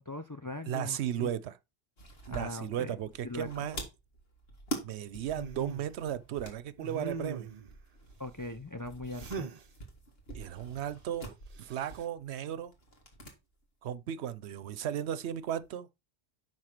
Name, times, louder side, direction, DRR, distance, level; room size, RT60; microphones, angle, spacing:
voice 1, 0.0-1.3 2.3-3.0 3.2-3.7 8.2-9.5, left 2 dB, 25° left, 0.5 m, -40 dB
voice 2, 0.6-1.6 2.3-3.9 4.8-7.5 10.3-12.7 13.8-15.9, right 10 dB, 80° right, 0.9 m, -35 dB
sound 1, 2.0-13.4 13.6-13.7 15.0-15.7, right 1 dB, 65° left, 2.5 m, -46 dB
sound 2, 5.3-5.9 6.8-7.7 9.1-9.6 11.6-12.0, right 5 dB, 40° right, 0.8 m, -40 dB
9.7 x 4.1 x 5.9 m
omnidirectional pair, 1.1 m